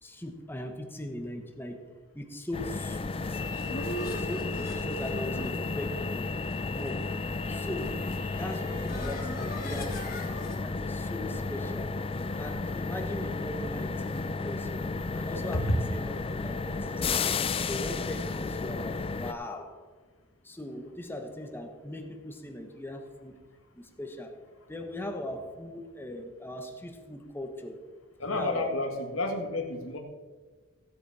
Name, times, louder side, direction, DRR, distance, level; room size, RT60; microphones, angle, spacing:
voice 1, 0.0-1.8 2.1-3.4 4.2-6.3 6.7-7.1 7.5-8.1 8.3-10.2 10.6-11.9 12.4-14.8 15.1-16.1 16.4-17.3 17.7-19.8 20.4-23.4 23.7-24.3 24.7-27.8 28.3-28.6, left 1 dB, 10° left, 4 dB, 1.3 m, -39 dB
sound 1, 2.5-19.3, left 3 dB, 30° left, 0.5 m, -33 dB
sound 2, 3.2-10.6, equal, 45° left, 2.8 m, -40 dB
voice 2, 28.2-30.0, left 1 dB, 85° left, 3 dB, 2.0 m, -30 dB
16.0 x 8.3 x 4.3 m, 1.4 s
head